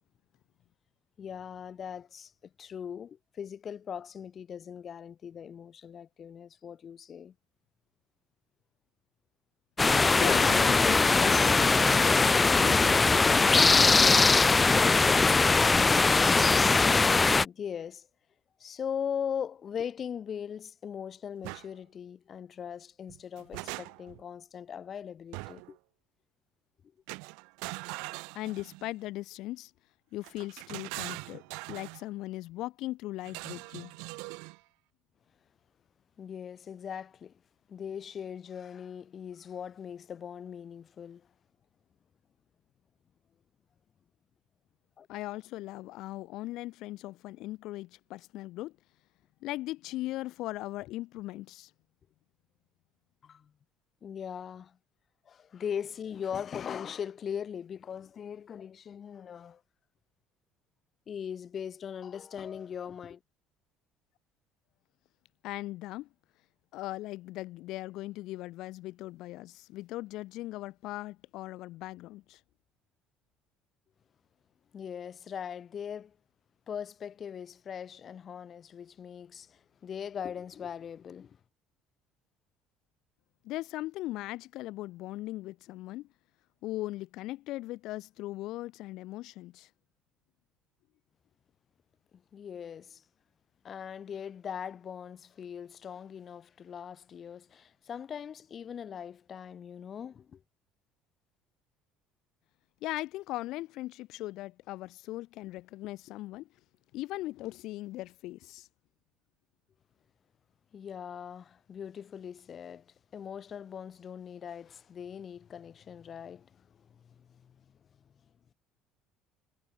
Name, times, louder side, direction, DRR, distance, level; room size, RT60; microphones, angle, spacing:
voice 1, 1.2-2.3 2.6-7.3 17.4-18.1 18.6-25.8 36.2-37.4 37.7-41.3 45.0-45.1 53.2-53.5 54.0-54.8 55.2-59.6 61.1-63.2 74.7-76.2 76.7-81.4 92.3-93.0 93.6-100.4 110.7-117.6, left 8 dB, 30° left, 4.6 m, -40 dB
sound 1, 9.8-17.4, left 4 dB, 15° left, 0.5 m, -21 dB
voice 2, 10.2-14.5 28.3-29.7 30.1-31.4 31.7-34.0 45.1-48.7 49.4-51.7 65.4-66.1 66.7-72.4 83.4-86.1 86.6-89.7 102.8-106.5 106.9-108.7, left 17 dB, 60° left, 5.5 m, -39 dB
sound 2, 21.4-21.7 23.1-24.2 25.3-25.8 27.1-28.9 30.2-32.0 33.3-34.6, right 31 dB, 90° right, 1.3 m, -41 dB
cardioid pair, 150°, 0 cm